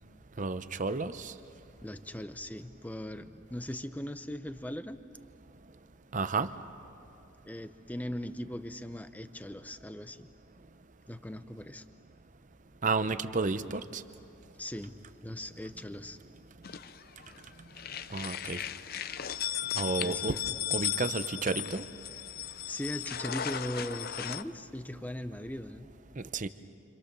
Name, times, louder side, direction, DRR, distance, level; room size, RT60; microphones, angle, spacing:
voice 1, 0.4-1.3 6.1-6.5 12.8-14.0 18.1-18.6 19.7-20.4 20.7-21.8 26.2-26.5, right 4 dB, 35° right, 11 dB, 0.7 m, -31 dB
voice 2, 1.8-5.0 7.4-10.3 11.1-11.8 14.6-15.0 15.2-16.2 20.0-20.6 22.7-25.9, left 1 dB, 10° left, 10 dB, 0.7 m, -39 dB
sound 1, 16.6-17.4 17.7-24.4, left 10 dB, 45° left, 0.6 m, -36 dB
29.0 x 26.0 x 6.9 m, 2.7 s
head